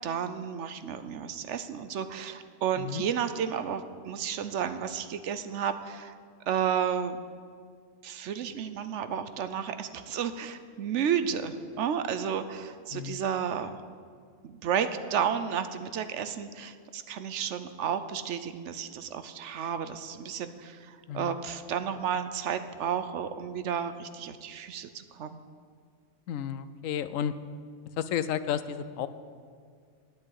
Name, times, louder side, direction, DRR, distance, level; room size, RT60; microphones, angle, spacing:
voice 1, 0.0-6.1 6.5-7.2 8.0-13.8 14.4-25.4, right 8 dB, 70° right, 11 dB, 0.9 m, -32 dB
voice 2, 26.3-27.3 28.0-29.1, left 9 dB, 90° left, 13 dB, 1.0 m, -32 dB
10.0 x 8.5 x 8.1 m, 2.1 s
omnidirectional pair, 1.3 m